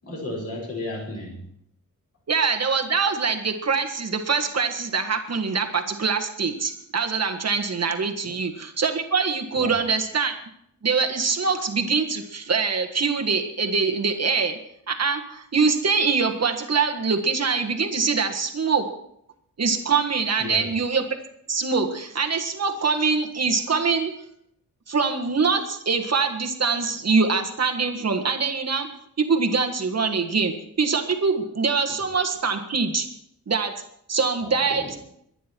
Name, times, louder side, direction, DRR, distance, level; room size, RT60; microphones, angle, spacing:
voice 1, 0.0-1.4 8.2-8.3 9.5-9.7 20.4-20.7 34.4-34.9, left 2 dB, 45° left, -1 dB, 5.3 m, -34 dB
voice 2, 2.3-10.4 10.8-14.6 14.9-18.8 19.6-21.0 21.5-24.1 24.9-28.9 29.2-33.1 33.5-33.7 34.1-35.0, right 5 dB, 45° right, 4 dB, 1.7 m, -24 dB
22.5 x 10.0 x 4.6 m, 0.74 s
wide cardioid pair, 170°, 35 cm